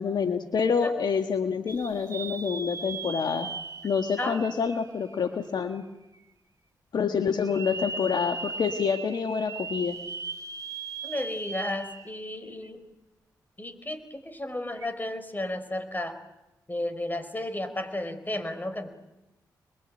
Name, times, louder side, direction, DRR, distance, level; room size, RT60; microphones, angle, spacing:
voice 1, 0.0-3.5 3.8-5.8 6.9-10.0, left 6 dB, 70° left, 6 dB, 1.6 m, -27 dB
sound 1, 1.7-5.6 6.2-6.3 7.3-12.3 12.6-12.7 14.7-14.9, right 4 dB, 45° right, 2.4 m, -38 dB
voice 2, 4.2-4.5 11.0-12.8 13.6-16.1 16.7-18.9, left 1 dB, 25° left, 10 dB, 5.0 m, -33 dB
26.5 x 22.0 x 9.1 m, 0.96 s
supercardioid pair, 45°, 8 cm